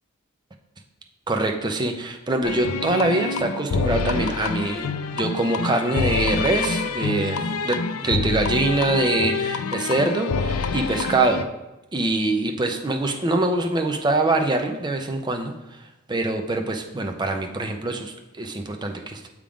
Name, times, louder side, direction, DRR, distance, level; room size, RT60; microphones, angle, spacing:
voice 1, 1.3-4.9 5.1-7.8 8.0-11.4 11.9-15.5 16.1-19.3, right 2 dB, 20° right, 4 dB, 0.6 m, -24 dB
sound 1, 2.4-11.5, left 4 dB, 80° left, 0.4 m, -26 dB
7.2 x 3.6 x 4.9 m, 0.99 s
head